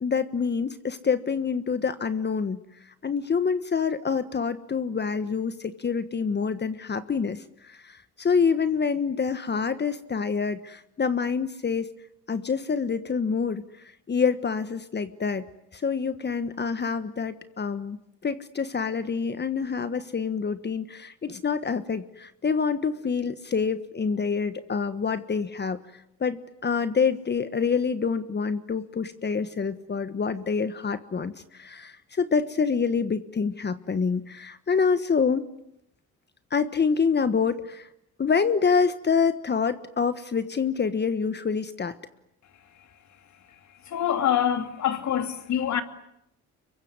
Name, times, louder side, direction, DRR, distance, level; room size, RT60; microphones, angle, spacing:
voice 1, 0.0-2.6 3.0-11.9 12.3-13.6 14.1-15.4 15.7-18.0 18.2-25.8 26.2-35.5 36.5-37.9 38.2-42.0, left 5 dB, 35° left, 1.4 m, -26 dB
voice 2, 43.9-45.8, left 9 dB, 65° left, 2.8 m, -25 dB
26.0 x 23.0 x 9.6 m
cardioid pair, 90°, 30 cm